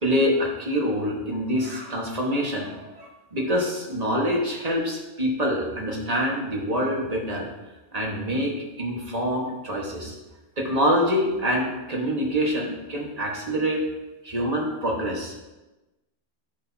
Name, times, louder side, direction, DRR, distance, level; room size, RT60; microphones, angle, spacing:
voice 1, 0.0-7.5 7.9-10.1 10.6-13.8 14.2-15.3, equal, 35° right, -2 dB, 1.6 m, -26 dB
15.0 x 5.3 x 2.8 m, 1.1 s
omnidirectional pair, 1.2 m